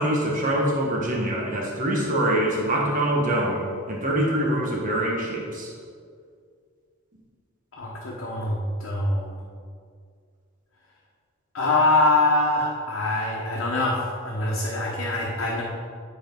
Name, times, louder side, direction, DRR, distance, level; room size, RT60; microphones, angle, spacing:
voice 1, 0.0-5.7, right 1 dB, 40° right, -3 dB, 1.3 m, -24 dB
voice 2, 7.7-9.4 11.5-15.6, left 2 dB, 70° left, -4 dB, 1.1 m, -24 dB
9.8 x 4.3 x 5.2 m, 2.2 s
head